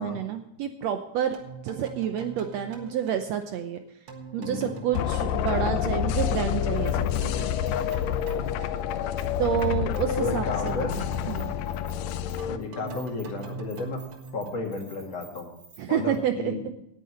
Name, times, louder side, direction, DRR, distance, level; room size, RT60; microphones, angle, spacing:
voice 1, 0.0-1.4 1.6-3.8 4.3-7.1 9.4-10.7 11.3-11.5 15.8-16.7, right 9 dB, 70° right, 7 dB, 1.7 m, -29 dB
sound 1, 1.3-6.6 6.9-15.1, right 6 dB, 50° right, 2.3 m, -43 dB
voice 2, 4.4-4.8 10.2-11.0 12.4-14.0 14.3-15.5 15.9-16.7, left 3 dB, 55° left, 1 dB, 3.3 m, -33 dB
sound 2, 4.9-12.6, left 10 dB, 75° left, 1.7 m, -28 dB
Keys jangling, 6.8-7.4 7.7-9.6 9.9-10.4 10.7-15.8 16.1-16.2, right 4 dB, 30° right, 3.5 m, -53 dB
18.0 x 9.7 x 3.2 m, 0.83 s
omnidirectional pair, 3.6 m